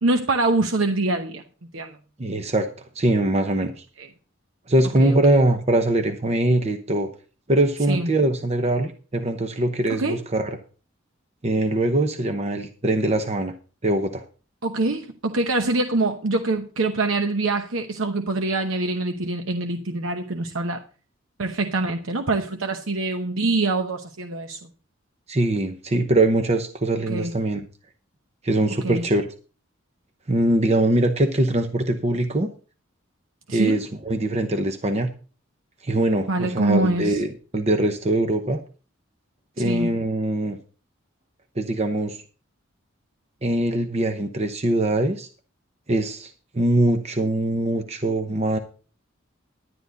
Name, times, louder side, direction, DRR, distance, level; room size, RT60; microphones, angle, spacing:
voice 1, 0.0-1.4 1.7-2.0 4.0-4.1 5.0-5.4 7.9-8.1 9.9-10.2 14.6-20.8 21.4-24.6 27.1-27.3 28.8-29.0 33.5-33.8 36.3-37.2 39.6-39.9, right 2 dB, 85° right, 1.0 m, -24 dB
voice 2, 2.2-2.7 2.9-3.8 4.7-7.1 7.5-10.6 11.4-13.5 13.8-14.2 25.3-27.6 28.4-29.3 30.3-32.5 33.5-35.1 35.8-38.6 39.6-40.6 41.6-42.2 43.4-45.3 45.9-48.6, right 1 dB, 35° right, 0.9 m, -22 dB
11.0 x 10.5 x 4.0 m
head